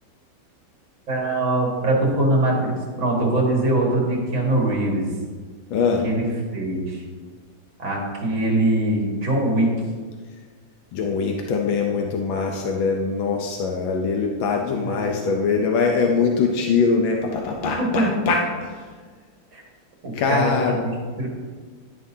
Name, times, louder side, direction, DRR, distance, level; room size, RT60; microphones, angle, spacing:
voice 1, 1.1-5.1 6.0-6.3 6.5-7.0 7.8-9.7 14.8-15.2 17.8-18.1 19.5-19.6 20.0-21.3, right 1 dB, 75° right, -2 dB, 2.8 m, -22 dB
voice 2, 5.7-6.1 10.9-18.8 20.1-20.8, left 5 dB, 90° left, 1 dB, 1.6 m, -22 dB
10.5 x 9.9 x 2.8 m, 1.5 s
omnidirectional pair, 2.1 m